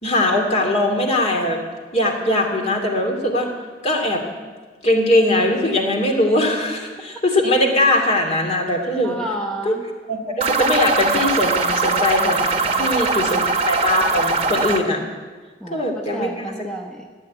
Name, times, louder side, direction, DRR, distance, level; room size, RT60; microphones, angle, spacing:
voice 1, 0.0-1.6 1.9-3.5 3.8-4.2 4.8-9.2 9.6-9.7 10.1-12.5 12.7-15.0 15.7-16.3, left 1 dB, 35° left, 2 dB, 2.4 m, -20 dB
voice 2, 9.0-9.9 12.7-13.2 15.6-17.1, right 1 dB, 5° left, 0 dB, 1.1 m, -31 dB
sound 1, 10.4-14.8, right 3 dB, 35° right, 1.1 m, -21 dB
16.0 x 8.5 x 9.5 m, 1.4 s
head